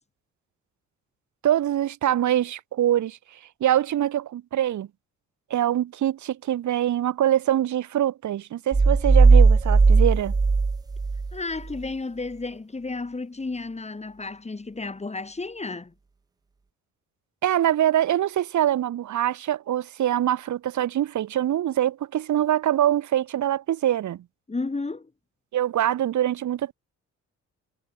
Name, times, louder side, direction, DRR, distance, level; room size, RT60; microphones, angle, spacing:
voice 1, 1.4-3.2 3.6-4.9 5.5-10.3 17.4-24.2 25.5-26.7, right 11 dB, 70° right, 3.9 m, -24 dB
sound 1, 8.7-11.3, right 4 dB, 15° right, 0.4 m, -17 dB
voice 2, 11.3-15.9 24.5-25.1, left 3 dB, 20° left, 5.1 m, -32 dB
cardioid pair, 90°, 30 cm